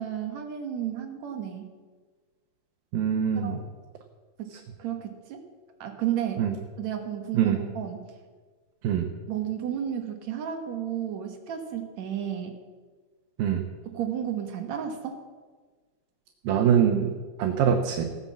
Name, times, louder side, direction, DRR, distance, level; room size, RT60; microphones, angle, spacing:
voice 1, 0.0-1.7 3.4-3.6 4.4-4.5 4.8-5.4 5.8-6.5 6.8-8.0 9.3-12.6 13.9-15.2, right 10 dB, 60° right, 5 dB, 2.3 m, -32 dB
voice 2, 2.9-3.6 6.4-6.5 7.3-7.6 8.8-9.1 13.4-13.6 16.5-18.0, right 8 dB, 80° right, 2 dB, 2.8 m, -24 dB
16.5 x 9.7 x 7.3 m, 1.4 s
omnidirectional pair, 4.1 m